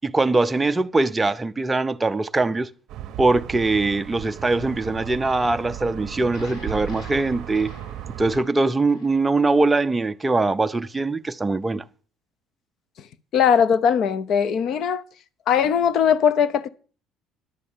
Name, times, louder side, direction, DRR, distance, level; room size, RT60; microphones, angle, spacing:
voice 1, 0.0-2.7 3.2-7.7 8.2-11.8, right 3 dB, 10° right, 0.5 m, -22 dB
sound 1, 2.9-8.4, right 11 dB, 55° right, 0.7 m, -36 dB
sound 2, 6.2-10.5, left 3 dB, 80° left, 3.3 m, -46 dB
voice 2, 13.3-15.0 15.5-16.7, left 7 dB, 45° left, 0.6 m, -19 dB
10.5 x 7.5 x 7.2 m
cardioid pair, 160°, 0 cm